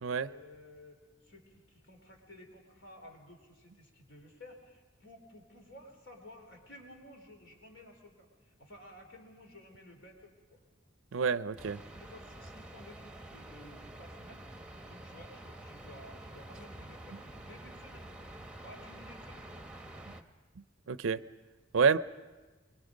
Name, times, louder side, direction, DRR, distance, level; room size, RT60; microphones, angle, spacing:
voice 1, 0.2-10.6 11.9-18.1 18.6-19.7, left 1 dB, 70° left, 3 dB, 3.7 m, -54 dB
voice 2, 11.1-11.8 20.9-21.2 21.7-22.0, right 5 dB, 85° right, 15 dB, 0.5 m, -27 dB
sound 1, 11.6-20.2, right 1 dB, 5° right, 0.9 m, -48 dB
23.5 x 22.5 x 5.1 m, 1.3 s
head